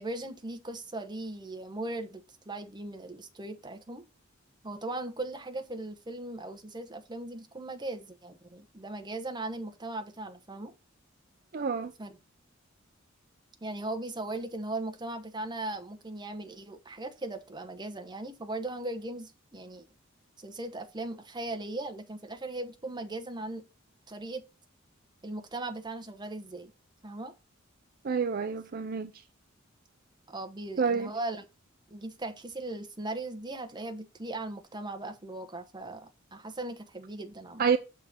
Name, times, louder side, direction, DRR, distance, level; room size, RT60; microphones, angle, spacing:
voice 1, 0.0-4.0 4.6-10.7 12.0-12.1 13.6-19.8 20.4-23.6 24.1-24.4 25.2-26.7 27.0-27.3 30.3-31.4 31.9-37.7, right 2 dB, 20° right, 1.0 m, -38 dB
voice 2, 11.5-11.9 28.0-29.1 30.8-31.1 37.6-37.8, right 6 dB, 50° right, 0.5 m, -28 dB
6.8 x 3.8 x 5.7 m
head